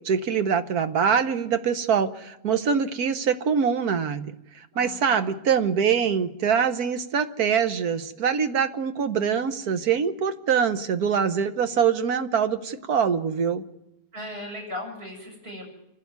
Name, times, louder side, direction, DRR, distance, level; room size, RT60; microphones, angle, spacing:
voice 1, 0.0-4.3 4.7-13.6, right 7 dB, 90° right, 10 dB, 1.6 m, -24 dB
voice 2, 4.7-5.4 14.1-15.6, left 1 dB, 45° right, 0 dB, 7.3 m, -37 dB
28.0 x 12.0 x 9.5 m, 0.89 s
omnidirectional pair, 1.6 m